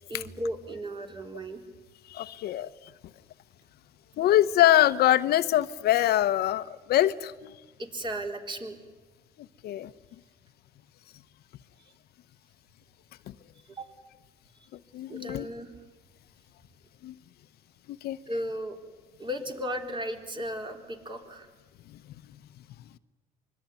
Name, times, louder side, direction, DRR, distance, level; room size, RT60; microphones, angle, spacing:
voice 1, 0.1-1.6 7.8-8.8 13.7-13.9 15.1-15.7 18.3-18.8 19.2-21.5, equal, 30° right, 4 dB, 4.0 m, -35 dB
voice 2, 2.1-2.7 4.2-7.6 9.6-9.9 14.9-15.5 17.0-17.1 17.9-18.2, left 13 dB, 70° left, 13 dB, 0.8 m, -24 dB
25.0 x 22.0 x 9.5 m, 1.3 s
cardioid pair, 110°, 17 cm